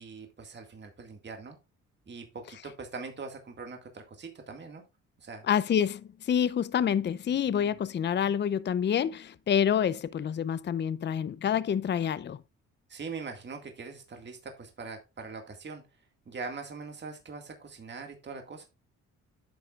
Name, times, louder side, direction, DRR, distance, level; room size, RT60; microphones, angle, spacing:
voice 1, 0.0-1.6 2.1-4.8 5.2-5.5 7.5-7.7 12.9-15.8 16.3-18.7, right 4 dB, 35° right, 2.0 m, -42 dB
voice 2, 5.5-12.4, left 8 dB, 35° left, 0.6 m, -27 dB
10.0 x 7.5 x 2.4 m
cardioid pair, 90°, 30 cm